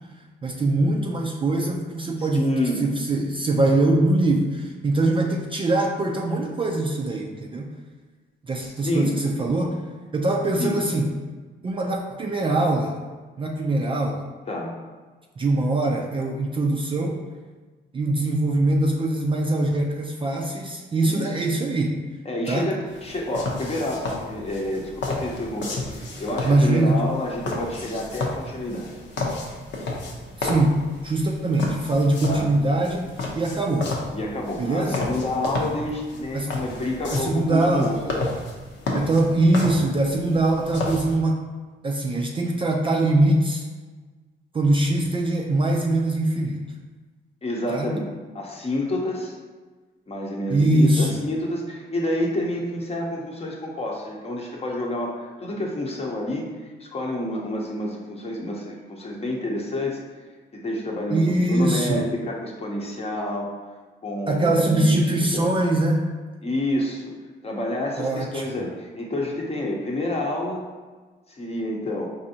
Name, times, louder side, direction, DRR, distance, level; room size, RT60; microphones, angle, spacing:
voice 1, 0.4-2.5 2.8-7.7 8.4-9.8 10.1-11.1 11.6-12.9 13.4-14.2 15.4-17.2 17.9-22.0 22.5-22.7 26.4-27.0 30.4-33.1 33.3-33.9 34.6-35.0 36.3-36.5 37.1-38.0 38.9-41.4 41.8-43.7 44.5-46.6 47.7-47.9 50.5-51.2 61.1-62.0 64.3-66.1 68.0-68.5, right 2 dB, 25° right, 0 dB, 0.4 m, -22 dB
voice 2, 2.2-2.8 8.8-9.1 10.6-10.8 14.5-14.7 21.0-21.3 22.2-28.9 32.2-32.5 34.1-38.0 47.4-48.1 48.3-49.3 50.1-56.5 56.8-60.0 60.5-63.5 64.0-65.5 66.4-67.1 67.4-70.6 71.3-72.1, left 1 dB, 30° left, -1 dB, 0.8 m, -28 dB
sound 1, 22.9-41.2, left 2 dB, 70° left, 0.8 m, -32 dB
4.7 x 2.6 x 2.7 m, 1.4 s
cardioid pair, 90°, 20 cm